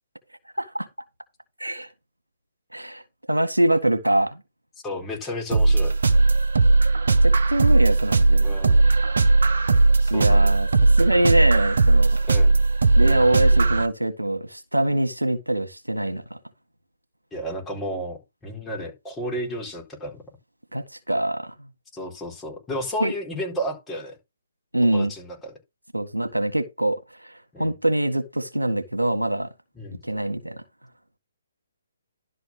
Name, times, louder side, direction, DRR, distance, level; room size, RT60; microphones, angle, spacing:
voice 1, 0.6-0.9 1.6-1.9 2.7-3.0 3.3-4.4 7.2-8.5 10.1-12.2 13.0-16.4 20.7-21.7 23.0-23.1 24.7-25.1 25.9-27.3 27.6-29.5 30.0-30.6, right 1 dB, 90° right, 1.8 m, -24 dB
voice 2, 4.8-5.9 8.4-8.9 10.0-10.5 12.3-12.5 17.3-20.2 21.9-24.2 24.8-25.4 27.5-27.7 29.8-30.0, equal, 10° left, 4.2 m, -32 dB
sound 1, 5.5-13.9, right 3 dB, 65° right, 1.1 m, -18 dB
11.5 x 4.3 x 6.1 m
figure-of-eight pair, 135°, 0 cm